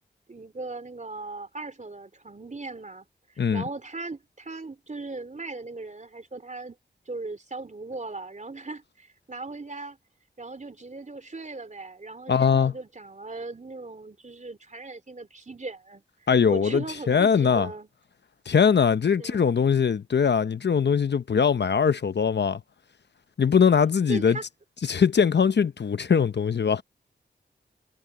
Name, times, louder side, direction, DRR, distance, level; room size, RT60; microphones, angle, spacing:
voice 1, 0.3-6.8 7.0-10.0 10.4-17.9 19.2-19.5 24.1-24.4, right 3 dB, 40° right, 3.3 m, -38 dB
voice 2, 12.3-12.7 16.3-17.7 18.5-22.6 23.4-24.4 24.9-26.8, left 6 dB, 70° left, 0.8 m, -21 dB
cardioid pair, 45°, 19 cm